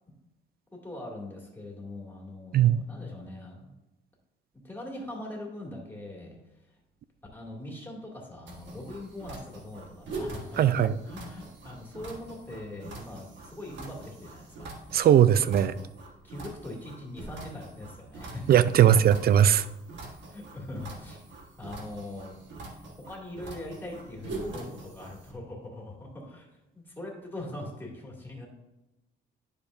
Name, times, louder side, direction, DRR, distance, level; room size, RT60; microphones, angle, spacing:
voice 1, 0.8-3.7 4.6-6.4 7.3-10.7 11.0-14.7 16.2-18.6 19.1-19.2 20.2-21.2 21.6-22.4 23.1-26.5 26.7-28.5, left 1 dB, 10° left, -2 dB, 2.4 m, -41 dB
voice 2, 2.5-2.8 10.6-10.9 14.9-15.7 18.5-19.6, right 10 dB, 50° right, 15 dB, 0.4 m, -19 dB
sound 1, 8.5-25.3, right 2 dB, 65° right, 1.4 m, -43 dB
10.5 x 4.9 x 2.6 m, 0.98 s
cardioid pair, 90°, 20 cm